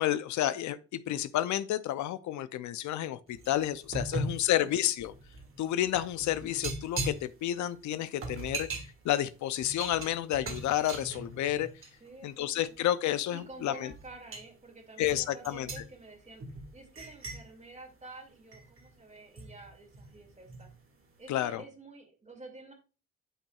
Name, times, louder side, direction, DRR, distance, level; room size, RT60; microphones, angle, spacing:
voice 1, 0.0-5.1 5.6-8.7 9.0-11.7 12.2-13.9 15.0-15.7 21.3-21.6, left 12 dB, 70° left, 0.5 m, -30 dB
sound 1, 3.3-12.1 12.5-12.8 13.4-13.6 13.9-14.5 15.0-18.9 19.4-20.7 21.0-21.2, right 2 dB, 45° right, 1.7 m, -40 dB
voice 2, 4.0-4.5 12.0-12.5 13.3-20.7 21.2-22.7, right 2 dB, 25° right, 2.2 m, -50 dB
8.6 x 5.3 x 2.3 m
cardioid pair, 90°, 30 cm